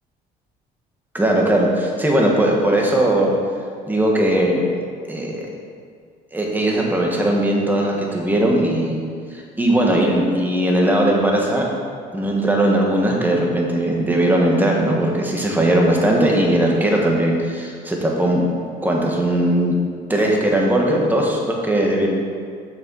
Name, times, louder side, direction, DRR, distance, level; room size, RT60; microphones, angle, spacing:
voice 1, 1.1-3.3 3.9-4.6 5.1-5.4 6.3-9.0 9.3-11.7 12.1-18.4 18.8-19.7 20.1-22.1, right 1 dB, 10° right, -1 dB, 1.6 m, -19 dB
7.7 x 6.4 x 4.8 m, 2.1 s
cardioid pair, 110°, 17 cm